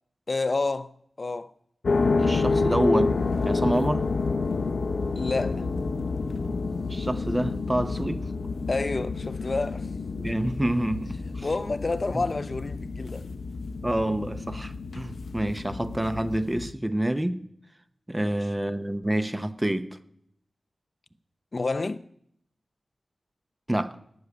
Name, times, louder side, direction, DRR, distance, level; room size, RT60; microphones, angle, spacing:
voice 1, 0.3-0.9 1.2-1.5 5.1-5.6 8.7-9.9 11.4-13.3 18.2-18.3 21.5-22.0, left 3 dB, 40° left, 0.7 m, -29 dB
sound 1, 1.8-16.7, left 3 dB, 75° left, 1.0 m, -29 dB
voice 2, 2.2-3.1 3.4-4.0 6.9-8.2 10.2-11.5 12.1-12.2 13.8-17.4 18.1-19.9 23.7-24.0, right 1 dB, 15° right, 0.9 m, -27 dB
18.5 x 6.7 x 9.6 m
wide cardioid pair, 105°, 0 cm